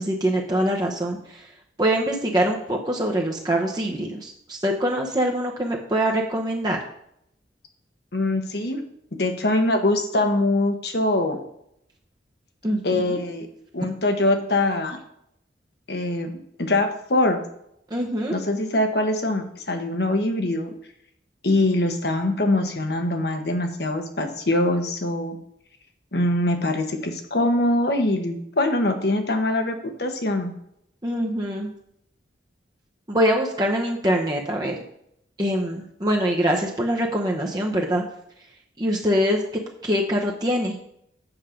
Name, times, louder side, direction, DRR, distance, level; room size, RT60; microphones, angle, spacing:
voice 1, 0.0-1.5 1.8-6.8 12.6-13.2 17.9-18.4 31.0-31.7 33.1-34.8 35.4-38.0 38.8-39.4 39.8-40.8, equal, 20° right, -1 dB, 0.9 m, -24 dB
voice 2, 8.1-8.8 9.1-11.4 12.8-13.5 13.7-15.0 15.9-17.4 18.3-20.7 21.4-25.4 26.1-30.5, left 1 dB, 60° left, 5 dB, 1.2 m, -23 dB
7.9 x 7.3 x 5.1 m, 0.76 s
head